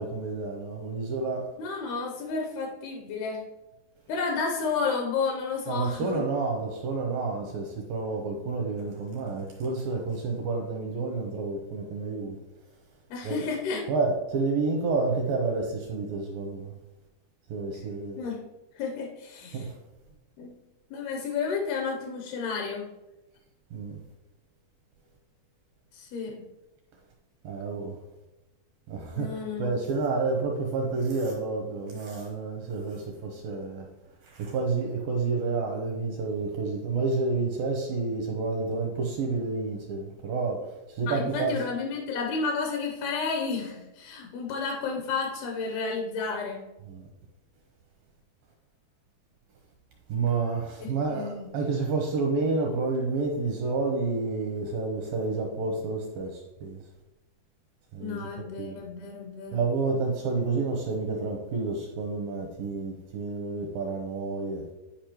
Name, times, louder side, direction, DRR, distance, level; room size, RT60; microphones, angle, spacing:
voice 1, 0.0-1.5 5.7-12.4 13.2-13.4 13.9-16.8 17.5-18.2 19.5-19.7 23.7-24.0 27.4-28.0 28.9-33.9 34.2-41.6 46.9-47.1 50.1-56.8 57.9-58.3 58.6-58.8 59.5-64.6, right 3 dB, 85° right, 1 dB, 2.1 m, -29 dB
voice 2, 1.6-3.4 4.1-6.2 13.1-13.8 18.2-18.4 18.8-19.7 20.4-20.5 20.9-22.9 25.9-26.3 29.1-29.8 41.1-46.6 50.8-51.5 58.0-59.6, left 5 dB, 75° left, 1 dB, 2.7 m, -31 dB
10.5 x 4.9 x 3.0 m, 1.0 s
omnidirectional pair, 4.8 m